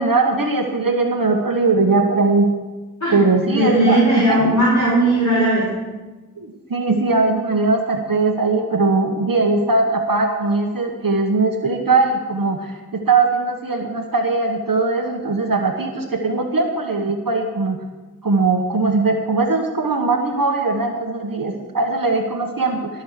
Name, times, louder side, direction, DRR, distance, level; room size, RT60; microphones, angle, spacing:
voice 1, 0.0-2.5 3.1-4.6 6.4-12.8 13.1-17.8 18.2-22.9, right 3 dB, 60° right, 3 dB, 1.2 m, -20 dB
voice 2, 3.5-5.7, right 1 dB, 45° left, -8 dB, 5.3 m, -17 dB
19.0 x 6.3 x 6.6 m, 1.2 s
wide cardioid pair, 50°, 37 cm